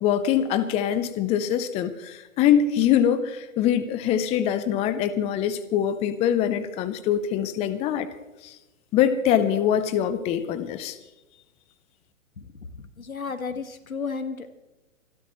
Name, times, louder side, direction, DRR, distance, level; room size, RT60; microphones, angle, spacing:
voice 1, 0.0-8.1 8.4-8.6 8.9-11.0, left 9 dB, 15° left, 13 dB, 0.6 m, -23 dB
voice 2, 12.7-14.6, left 5 dB, 90° left, 9 dB, 1.9 m, -33 dB
26.0 x 13.0 x 3.1 m, 1.0 s
hypercardioid pair, 125°, 40 cm